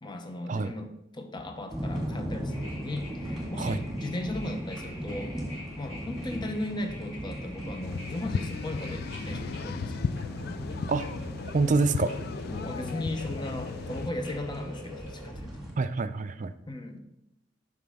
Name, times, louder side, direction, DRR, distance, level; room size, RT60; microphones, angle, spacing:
voice 1, 0.0-5.3 5.8-10.0 12.4-15.5 16.7-17.0, left 1 dB, 25° left, 6 dB, 0.8 m, -37 dB
sound 1, 1.7-15.7, equal, 5° right, 1.9 m, -38 dB
sound 2, 2.5-15.3, left 1 dB, 90° left, 2.9 m, -47 dB
sound 3, 7.8-14.1, left 6 dB, 55° left, 0.3 m, -35 dB
voice 2, 11.5-12.1 15.8-16.5, right 3 dB, 40° right, 11 dB, 0.4 m, -26 dB
9.3 x 6.1 x 3.5 m, 0.82 s
head